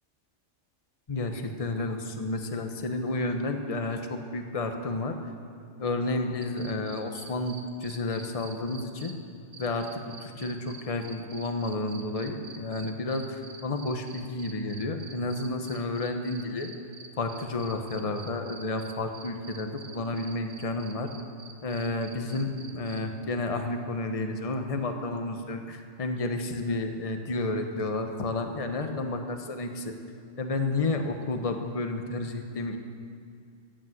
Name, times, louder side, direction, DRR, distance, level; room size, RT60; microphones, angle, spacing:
voice 1, 1.1-5.2 5.8-9.1 9.6-16.7 17.2-21.1 21.6-30.0 30.4-32.8, left 2 dB, 35° left, 5 dB, 1.0 m, -31 dB
sound 1, 6.4-9.1 9.5-23.0, right 5 dB, 85° right, 1.4 m, -46 dB
15.0 x 8.9 x 7.8 m, 2.4 s
omnidirectional pair, 1.2 m